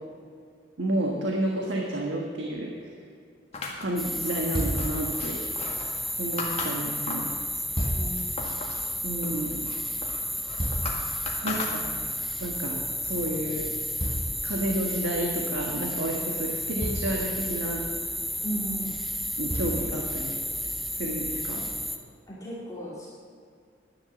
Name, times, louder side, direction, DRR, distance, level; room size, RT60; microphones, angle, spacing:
voice 1, 0.8-2.9 3.8-5.4 6.2-7.3 9.0-9.6 11.4-11.8 12.4-13.7 14.4-17.8 19.4-20.4 21.0-21.6, right 1 dB, 75° right, 0 dB, 1.5 m, -30 dB
Seamstress' Large Scissors, 3.5-7.4 7.8-8.9 9.2-12.2, left 3 dB, 35° left, 2.0 m, -37 dB
sound 1, 4.0-22.0, equal, ahead, 0.8 m, -32 dB
sound 2, 4.5-5.0 7.4-8.2 10.1-11.2 14.0-15.0 16.2-16.3 16.8-17.2 18.7-18.8 19.5-19.9 20.7-20.8, equal, 25° right, 4.4 m, -31 dB
voice 2, 7.9-8.4 11.3-12.1 18.4-18.9 22.3-23.1, right 1 dB, 20° left, -7 dB, 2.5 m, -36 dB
11.0 x 10.5 x 7.0 m, 2.2 s
head